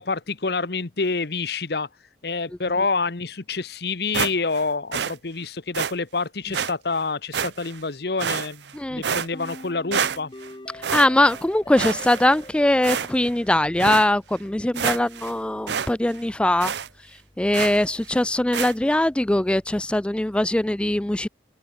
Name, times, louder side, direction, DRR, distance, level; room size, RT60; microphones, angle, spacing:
voice 1, 0.0-1.9 2.2-8.6 8.9-10.3, left 4 dB, 60° left, 1.1 m, -27 dB
sound 1, 4.1-4.6 4.9-5.1 5.7-5.9 6.5-6.7 7.3-7.8 8.2-8.7 9.0-9.6 9.9-10.5 10.8-11.4 11.8-12.5 12.8-13.3 13.8-14.1 14.5-14.6 14.7-15.3 15.7-15.9 16.2-16.3 16.6-16.9 17.5-17.8 18.5-18.7, right 7 dB, 75° right, 0.7 m, -27 dB
sound 2, 9.3-14.4, left 1 dB, 25° left, 0.9 m, -44 dB
voice 2, 10.7-16.7 17.4-21.3, left 1 dB, 5° left, 0.3 m, -21 dB
head